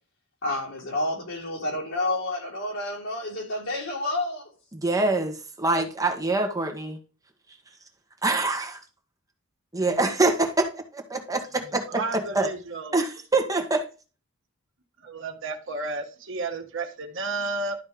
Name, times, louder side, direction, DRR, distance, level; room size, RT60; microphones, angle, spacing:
voice 1, 0.4-4.5, left 2 dB, 65° left, 3.9 m, -29 dB
voice 2, 4.7-7.0 8.2-8.8 9.7-10.5 11.1-11.4 12.1-12.5 12.9-13.8, right 2 dB, 15° right, 1.5 m, -24 dB
voice 3, 11.9-13.0 15.0-17.8, right 3 dB, 65° right, 1.5 m, -32 dB
12.0 x 4.3 x 5.1 m
head